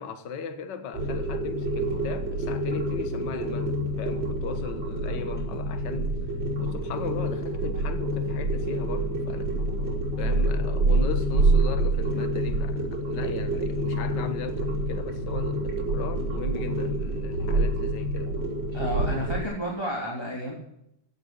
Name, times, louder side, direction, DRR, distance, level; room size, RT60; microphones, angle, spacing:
voice 1, 0.0-6.2 6.6-9.5 10.2-18.4, left 5 dB, 45° left, 1.6 m, -37 dB
sound 1, 0.9-19.5, right 1 dB, 35° right, 5.1 m, -27 dB
voice 2, 18.7-20.5, equal, 10° left, 3.1 m, -31 dB
16.5 x 9.7 x 7.7 m
omnidirectional pair, 3.5 m